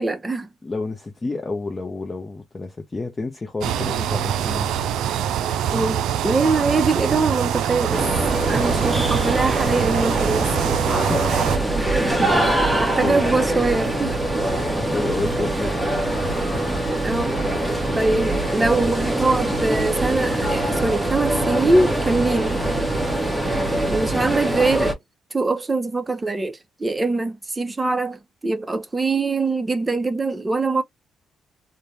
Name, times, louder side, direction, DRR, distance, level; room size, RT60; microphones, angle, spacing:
voice 1, 0.0-0.5 5.7-8.0 8.5-10.5 11.8-12.3 12.8-14.4 17.0-17.3 17.9-22.6 23.9-25.0 25.3-30.8, right 3 dB, 20° right, 0.7 m, -23 dB
voice 2, 0.6-4.7 10.9-11.2 12.3-13.2 14.7-16.0, left 3 dB, 25° left, 0.6 m, -30 dB
sound 1, 3.6-11.6, right 9 dB, 85° right, 0.3 m, -24 dB
sound 2, 7.9-24.9, right 1 dB, 5° right, 1.0 m, -23 dB
3.3 x 2.2 x 2.6 m
cardioid pair, 90°, 0 cm